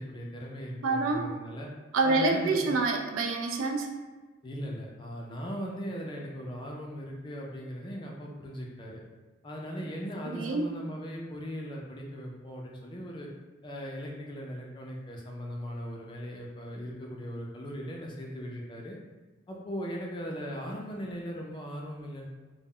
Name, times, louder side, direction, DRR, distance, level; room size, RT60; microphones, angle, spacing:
voice 1, 0.0-1.7 2.0-2.7 4.4-9.0 9.4-13.3 13.6-19.0 19.5-22.3, equal, 25° left, -1 dB, 0.3 m, -38 dB
voice 2, 0.8-1.2 1.9-3.9 10.2-10.7, right 3 dB, 85° right, 2 dB, 0.4 m, -27 dB
2.1 x 2.0 x 3.5 m, 1.3 s
head